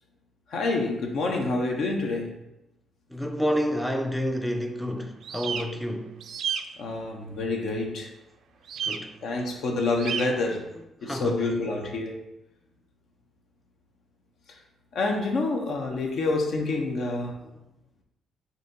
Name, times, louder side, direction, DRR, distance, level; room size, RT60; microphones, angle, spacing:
voice 1, 0.5-2.3 6.8-8.1 9.2-10.6 11.0-12.2 14.9-17.4, left 3 dB, 70° left, 0.8 m, -27 dB
voice 2, 3.1-6.1 8.9-9.1 11.0-11.4, equal, ahead, 0.4 m, -29 dB
sound 1, 5.2-5.6 6.2-6.6 8.7-9.0 10.0-10.3, right 7 dB, 65° right, 0.3 m, -30 dB
4.0 x 2.8 x 4.0 m
cardioid pair, 90°, 0 cm